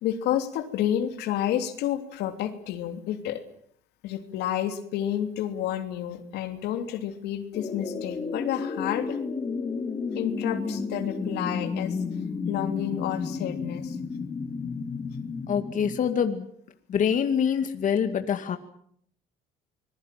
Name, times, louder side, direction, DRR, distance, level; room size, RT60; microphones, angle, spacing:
voice 1, 0.0-3.4 4.0-9.2 10.1-12.0 12.5-14.0 17.5-17.6, left 11 dB, 80° left, 7 dB, 3.0 m, -30 dB
sound 1, 7.5-16.1, left 4 dB, 30° left, 2.7 m, -32 dB
voice 2, 15.5-16.5 16.9-18.6, left 7 dB, 50° left, 7 dB, 2.2 m, -25 dB
26.0 x 21.0 x 7.7 m, 0.66 s
cardioid pair, 100°, 17 cm